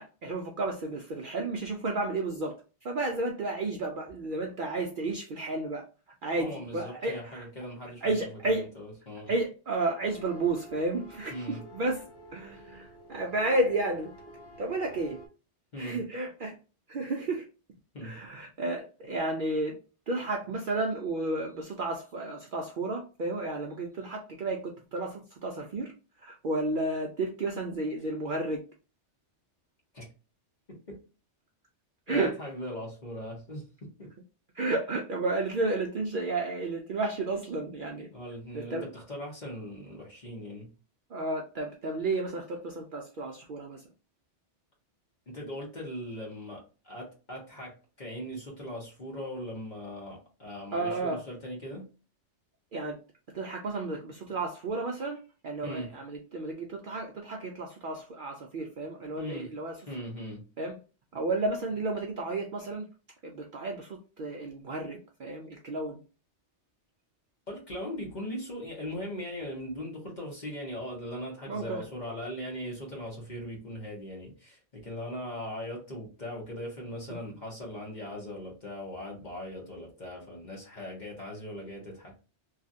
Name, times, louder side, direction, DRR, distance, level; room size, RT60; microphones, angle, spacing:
voice 1, 0.0-2.6 2.8-5.8 6.2-7.5 8.0-8.7 9.3-14.1 14.6-15.2 15.8-16.5 16.9-17.4 18.0-19.8 20.1-25.9 26.2-28.6 32.1-32.4 34.5-38.1 38.5-38.9 41.1-43.8 50.7-51.2 52.7-53.0 53.3-59.8 60.6-60.8 61.1-62.8 63.2-66.0 71.5-71.8, right 2 dB, 60° right, 1 dB, 0.5 m, -32 dB
voice 2, 6.4-8.1 8.4-9.3 11.3-11.6 15.7-16.0 17.9-18.2 29.9-30.1 30.7-31.0 32.1-34.1 38.1-40.7 45.3-51.9 55.6-55.9 59.2-59.5 59.9-60.4 67.5-82.1, equal, 40° left, -1 dB, 1.1 m, -39 dB
sound 1, 10.0-15.3, right 1 dB, 25° left, 0.7 m, -49 dB
3.0 x 2.4 x 2.6 m, 0.34 s
omnidirectional pair, 1.2 m